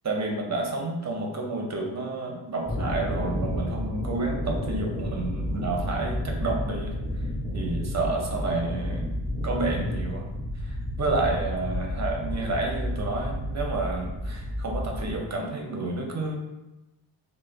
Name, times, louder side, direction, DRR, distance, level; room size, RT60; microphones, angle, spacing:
voice 1, 0.0-7.0 7.5-9.1 9.4-10.3 10.6-16.4, right 3 dB, 35° right, 0 dB, 0.7 m, -30 dB
sound 1, 2.6-15.2, left 1 dB, 30° left, 1.1 m, -31 dB
3.2 x 2.1 x 2.4 m, 0.98 s
cardioid pair, 70°, 46 cm